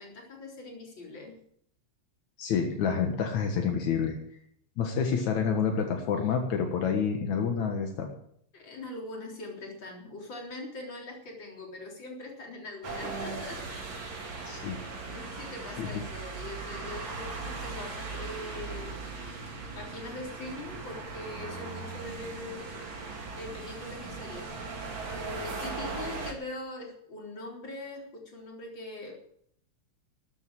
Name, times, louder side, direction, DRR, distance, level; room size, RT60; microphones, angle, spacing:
voice 1, 0.0-1.4 8.5-13.6 15.1-19.0 19.8-22.7 23.4-24.5 25.4-29.1, left 2 dB, 40° left, -1 dB, 4.4 m, -42 dB
voice 2, 2.4-4.2 4.8-8.1 14.5-14.8 15.8-15.9, left 6 dB, 80° left, 3 dB, 2.9 m, -28 dB
sound 1, 12.8-26.3, right 3 dB, 60° right, 4.0 m, -38 dB
13.0 x 9.5 x 9.0 m, 0.67 s
omnidirectional pair, 3.3 m